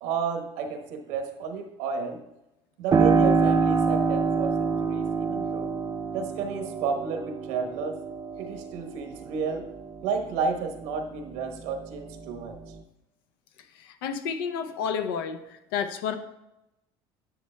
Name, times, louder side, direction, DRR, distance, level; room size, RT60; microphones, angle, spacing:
voice 1, 0.0-2.2 2.8-5.7 6.1-8.0 8.4-9.7 10.0-12.6, right 5 dB, 80° right, 4 dB, 1.1 m, -31 dB
Piano, 2.9-11.3 11.8-12.8, right 5 dB, 35° right, 0.6 m, -27 dB
voice 2, 13.8-15.4 15.7-16.1, left 7 dB, 90° left, 9 dB, 0.7 m, -30 dB
10.0 x 6.4 x 2.2 m, 0.88 s
supercardioid pair, 95°, 12 cm